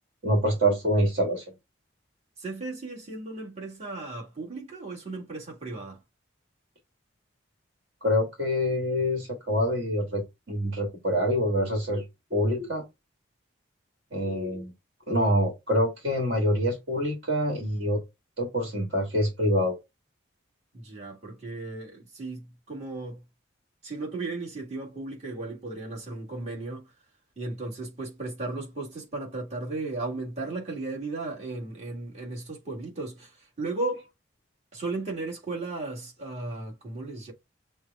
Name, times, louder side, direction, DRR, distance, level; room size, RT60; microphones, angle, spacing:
voice 1, 0.2-1.4 8.0-12.0 12.3-12.8 14.1-14.7 15.1-18.0 18.4-19.8, equal, 55° right, 1.6 m, -26 dB
voice 2, 2.4-6.0 20.7-23.2 23.8-26.9 27.4-34.1 34.7-37.3, right 2 dB, 35° right, 1.8 m, -35 dB
6.3 x 2.3 x 3.5 m
head